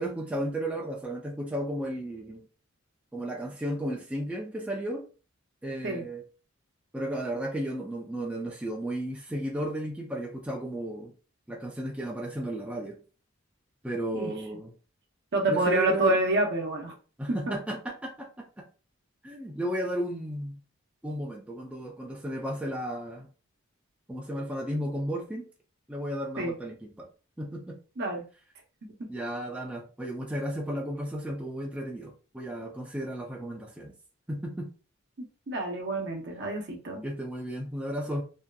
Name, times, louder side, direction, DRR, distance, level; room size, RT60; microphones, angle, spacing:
voice 1, 0.0-2.4 3.1-5.0 5.6-6.2 6.9-11.1 11.5-13.0 13.8-14.7 15.5-16.2 17.2-18.5 19.2-20.6 21.0-23.3 24.1-25.4 25.9-27.1 27.4-27.8 29.1-33.9 34.3-34.7 37.0-38.2, right 1 dB, 5° right, -1 dB, 0.4 m, -34 dB
voice 2, 15.3-16.9 17.5-17.6 26.4-26.5 28.0-28.2 35.5-37.0, right 2 dB, 55° right, 1 dB, 0.7 m, -27 dB
2.7 x 2.3 x 2.3 m, 0.35 s
head